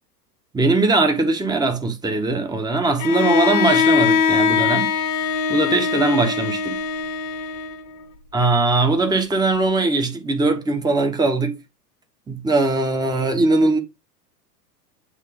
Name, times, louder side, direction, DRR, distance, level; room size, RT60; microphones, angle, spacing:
voice 1, 0.5-4.9 5.5-6.8 8.3-11.6 12.3-13.8, right 2 dB, 10° right, 1.1 m, -20 dB
Bowed string instrument, 3.0-8.0, left 6 dB, 35° left, 1.1 m, -21 dB
8.3 x 2.8 x 5.1 m
hypercardioid pair, 95°, 49 cm